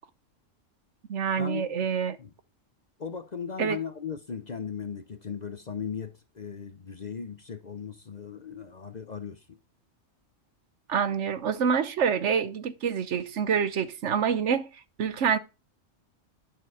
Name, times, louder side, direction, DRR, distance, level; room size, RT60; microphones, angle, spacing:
voice 1, 1.1-2.2 3.6-3.8 10.9-14.7 15.0-15.4, right 7 dB, 65° right, 1.1 m, -26 dB
voice 2, 3.0-9.6, left 7 dB, 40° left, 0.7 m, -37 dB
11.0 x 6.7 x 4.8 m
omnidirectional pair, 1.3 m